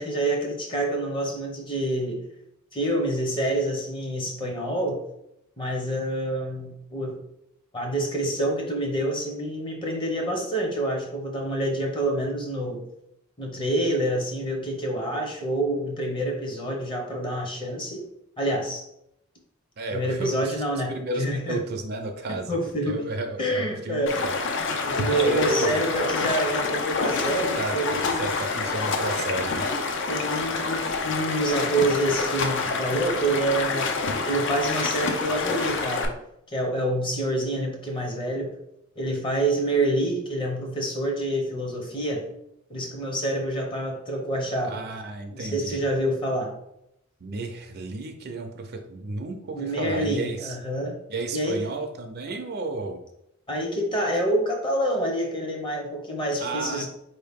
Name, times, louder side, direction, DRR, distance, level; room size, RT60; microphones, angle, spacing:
voice 1, 0.0-2.2 2.7-5.0 5.6-7.2 7.7-12.8 13.4-18.1 18.4-18.9 19.9-21.6 22.3-23.0 23.4-24.2 24.8-28.3 30.1-36.1 36.5-38.6 39.0-42.3 42.7-44.8 45.3-46.5 49.6-50.9 51.3-51.6 53.5-56.9, right 1 dB, 25° left, 1 dB, 0.8 m, -27 dB
voice 2, 19.8-20.6 20.9-22.6 22.8-24.4 25.1-25.9 27.5-29.7 44.6-45.8 47.2-50.6 51.1-53.0 56.4-56.9, right 2 dB, 50° right, 5 dB, 0.5 m, -32 dB
Stream, 24.1-36.1, left 4 dB, 60° left, 0.5 m, -27 dB
4.3 x 2.8 x 3.5 m, 0.79 s
head